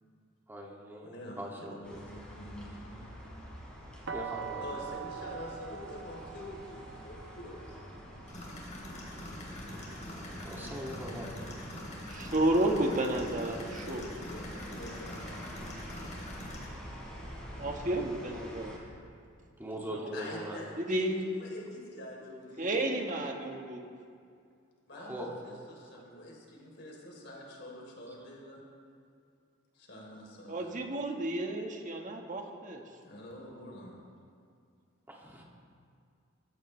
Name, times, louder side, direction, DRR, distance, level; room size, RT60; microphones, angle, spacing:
voice 1, 0.5-2.0 4.1-4.9 10.4-11.3 11.6-11.7 19.6-20.6 24.9-25.3 35.1-35.4, equal, 10° right, -3 dB, 2.4 m, -41 dB
voice 2, 1.0-3.1 4.6-7.8 13.5-15.4 20.1-23.2 24.9-28.6 29.7-30.7 33.0-34.0, left 1 dB, 60° left, -2 dB, 3.7 m, -46 dB
sound 1, 1.8-18.8, equal, 5° left, 3.7 m, -46 dB
sound 2, 4.1-9.9, right 7 dB, 70° right, 1.0 m, -44 dB
sound 3, 8.3-16.7, left 1 dB, 35° left, 3.6 m, -45 dB
voice 3, 12.1-14.0 17.6-18.7 19.9-20.1 20.8-21.3 22.6-23.8 30.5-32.8, right 1 dB, 40° right, 2 dB, 1.6 m, -31 dB
22.5 x 15.0 x 3.3 m, 2.3 s
head